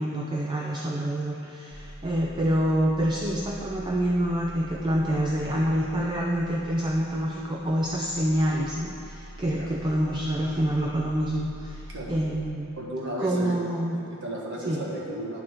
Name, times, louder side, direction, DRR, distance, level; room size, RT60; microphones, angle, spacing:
voice 1, 0.0-12.7 13.2-14.0 14.7-14.8, right 1 dB, 20° right, -2 dB, 0.4 m, -27 dB
sound 1, 1.7-12.6, equal, 45° left, 1.4 m, -44 dB
voice 2, 12.8-13.6 13.9-15.4, right 1 dB, 55° right, -3 dB, 1.5 m, -34 dB
8.9 x 4.5 x 6.3 m, 2.6 s
head